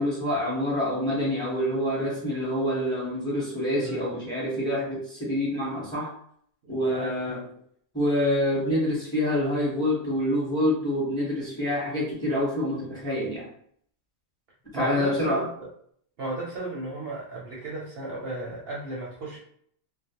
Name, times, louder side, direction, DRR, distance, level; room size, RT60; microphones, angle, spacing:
voice 1, 0.0-6.1 6.7-7.4 7.9-13.5 14.7-15.4, left 1 dB, 5° left, -6 dB, 0.9 m, -26 dB
voice 2, 6.6-7.4 14.7-15.7 16.2-19.4, right 2 dB, 60° right, -4 dB, 0.7 m, -35 dB
2.3 x 2.0 x 2.8 m, 0.64 s
omnidirectional pair, 1.3 m